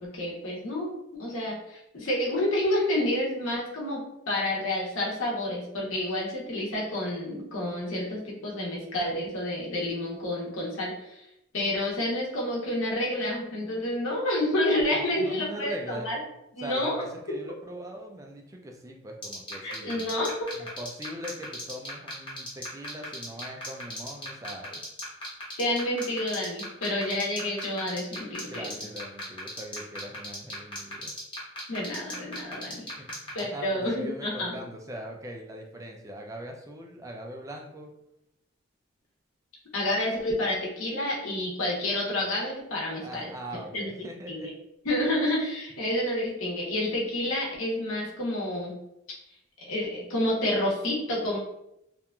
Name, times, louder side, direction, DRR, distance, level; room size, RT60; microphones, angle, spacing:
voice 1, 0.0-11.2 11.5-16.2 16.6-17.0 17.3-17.4 19.6-20.4 25.6-28.7 31.7-32.8 33.3-34.6 39.7-43.3 43.7-43.8 44.3-44.5 44.8-48.7 49.6-51.4, left 1 dB, 85° left, -3 dB, 0.9 m, -29 dB
voice 2, 14.9-16.1 16.6-20.2 20.6-24.8 28.4-31.1 32.7-37.9 43.0-44.5, equal, 15° right, 1 dB, 0.3 m, -41 dB
sound 1, 19.2-33.4, left 2 dB, 25° left, 0.9 m, -37 dB
2.9 x 2.4 x 2.2 m, 0.82 s
head